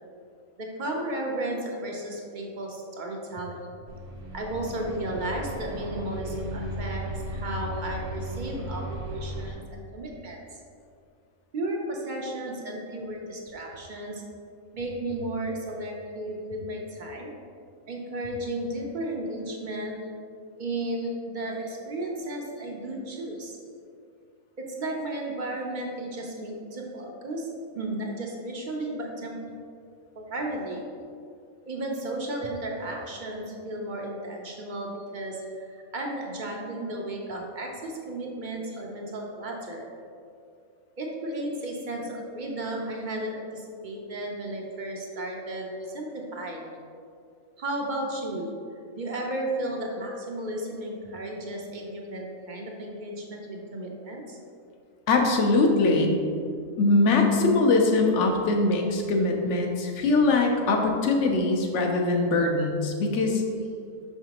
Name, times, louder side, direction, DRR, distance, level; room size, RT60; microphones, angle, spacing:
voice 1, 0.6-3.7 4.3-10.4 11.5-14.2 14.7-17.3 17.9-20.0 20.6-23.6 24.6-27.5 27.8-29.4 30.2-30.8 31.7-39.9 41.0-46.7 47.6-48.5 48.9-54.4, right 1 dB, 45° right, 0 dB, 0.7 m, -34 dB
sound 1, 3.9-9.5, right 1 dB, 65° right, 1.4 m, -36 dB
voice 2, 55.1-56.2 56.8-63.4, left 3 dB, 60° left, 2 dB, 1.0 m, -22 dB
6.0 x 5.7 x 2.9 m, 2.3 s
omnidirectional pair, 1.5 m